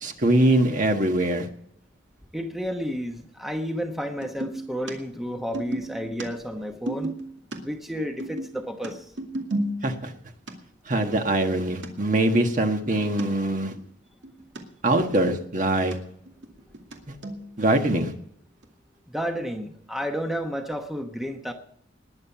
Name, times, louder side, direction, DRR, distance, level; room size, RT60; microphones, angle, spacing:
voice 1, 0.0-1.5 9.8-10.1 10.9-13.7 14.8-16.0 17.1-17.2 17.6-18.1, right 1 dB, 45° right, 5 dB, 1.5 m, -23 dB
voice 2, 2.3-7.1 7.6-9.1 19.1-21.5, equal, ahead, 4 dB, 1.0 m, -31 dB
sound 1, 4.2-4.6 4.9-5.0 5.2-7.6 7.9-10.2 10.5-10.6 11.0-11.1 11.5-11.6 11.8-11.9 12.2-13.3 13.7-13.8 14.1-14.6 14.9-16.0 16.3-17.0 17.2-17.6 17.9-18.0 18.6-18.7, right 1 dB, 75° right, 2.3 m, -33 dB
20.0 x 7.5 x 7.1 m, 0.68 s
head